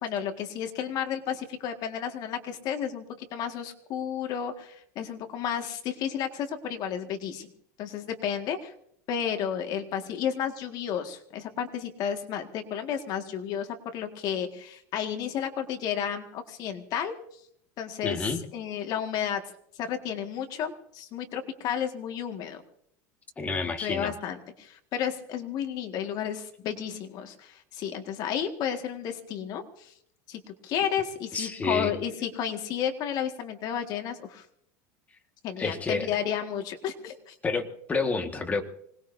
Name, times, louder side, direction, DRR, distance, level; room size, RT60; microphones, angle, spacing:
voice 1, 0.0-7.5 7.8-8.7 9.1-17.1 17.8-19.4 19.8-22.6 23.8-29.9 30.3-34.5 35.4-37.4, left 8 dB, 45° left, 5 dB, 1.8 m, -32 dB
voice 2, 18.0-18.4 23.4-24.1 31.3-31.9 35.6-36.1 37.4-38.6, left 3 dB, 15° left, 5 dB, 1.7 m, -29 dB
25.5 x 19.5 x 2.7 m, 0.69 s
supercardioid pair, 145°, 9 cm